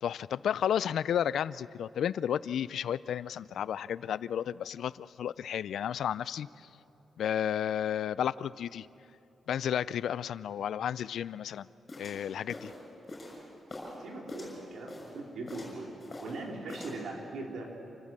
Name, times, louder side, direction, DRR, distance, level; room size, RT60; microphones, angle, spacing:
voice 1, 0.0-6.5 7.2-8.9 9.5-11.7 12.0-12.7, left 9 dB, 80° left, 19 dB, 0.4 m, -32 dB
sound 1, 11.9-14.0 14.3-15.2 15.5-16.4 16.7-17.0, left 2 dB, 30° left, 6.2 m, -44 dB
voice 2, 14.0-15.9 16.2-17.7, right 2 dB, 70° right, 0 dB, 3.5 m, -40 dB
28.5 x 15.0 x 7.5 m, 3.0 s
wide cardioid pair, 170°, 0 cm